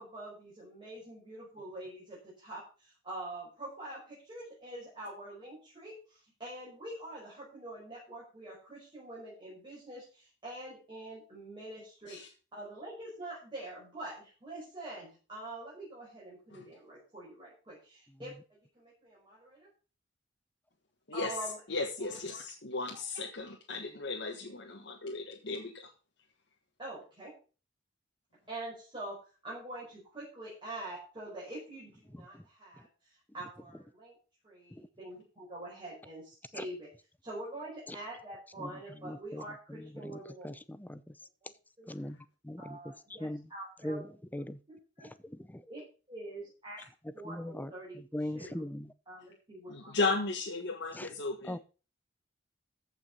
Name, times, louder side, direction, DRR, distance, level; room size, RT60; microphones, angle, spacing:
voice 1, 0.0-12.2 12.5-19.7 21.1-21.6 22.0-22.2 22.9-23.0 26.8-27.3 28.5-34.2 34.4-36.9 37.2-40.5 41.4-41.5 41.8-41.9 42.6-44.1 44.3-44.4 44.7-45.1 45.7-45.8 46.1-46.8 47.1-48.7 49.1-49.9, right 1 dB, 25° right, -7 dB, 5.6 m, -45 dB
voice 2, 21.7-25.9 49.9-51.6, left 3 dB, 65° left, 1 dB, 1.5 m, -35 dB
voice 3, 39.0-39.4 40.0-40.2 40.4-41.0 41.9-42.2 42.4-42.8 43.2-43.4 43.8-44.0 44.3-44.6 45.3-45.6 47.2-48.9 51.0-51.1 51.5-51.6, left 1 dB, 10° left, 14 dB, 0.6 m, -39 dB
14.5 x 5.8 x 5.5 m, 0.36 s
head